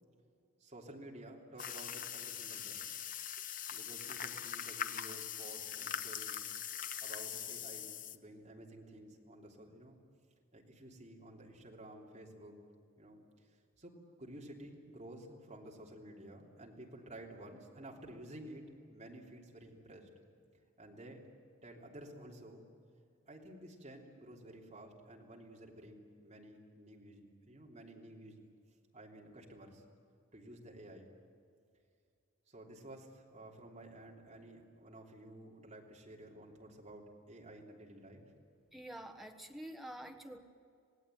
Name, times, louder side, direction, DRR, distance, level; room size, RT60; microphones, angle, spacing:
voice 1, 0.6-2.9 3.7-6.4 7.0-10.0 10.5-12.6 13.0-13.2 13.5-13.9 14.2-20.1 20.8-21.2 21.6-22.6 23.3-28.5 28.9-29.8 30.3-31.1 32.5-38.2, right 1 dB, 30° right, -1 dB, 3.2 m, -52 dB
sound 1, 1.6-8.2, left 9 dB, 40° left, 0.8 m, -42 dB
voice 2, 38.7-40.4, right 1 dB, ahead, 4 dB, 1.3 m, -47 dB
27.0 x 18.0 x 9.3 m, 2.4 s
head